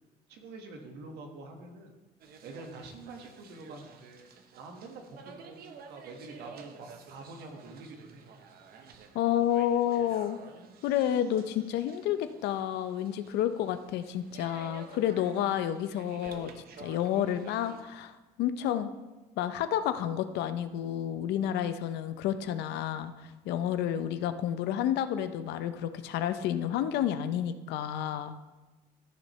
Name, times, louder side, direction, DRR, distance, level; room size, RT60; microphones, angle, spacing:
voice 1, 0.3-1.9 2.4-8.3, right 3 dB, 85° right, 3 dB, 1.6 m, -46 dB
sound 1, 2.2-17.8, right 6 dB, 65° right, 1.0 m, -52 dB
voice 2, 9.1-10.4 10.8-16.5 16.8-18.9 19.4-28.4, left 10 dB, 85° left, 11 dB, 0.6 m, -30 dB
14.5 x 6.5 x 3.2 m, 1.2 s
cardioid pair, 110°, 17 cm